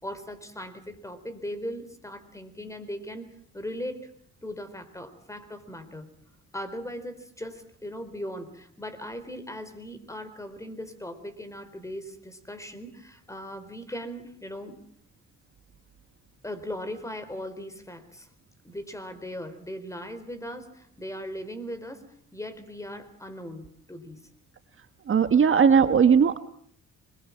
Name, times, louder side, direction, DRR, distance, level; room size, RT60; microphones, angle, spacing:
voice 1, 0.0-4.1 4.4-6.2 6.5-14.8 16.4-18.3 18.6-22.0 22.3-24.3, equal, 10° left, 11 dB, 4.2 m, -38 dB
voice 2, 25.1-26.4, right 6 dB, 45° right, 9 dB, 1.3 m, -18 dB
25.5 x 22.0 x 7.4 m, 0.64 s
cardioid pair, 90°, 30 cm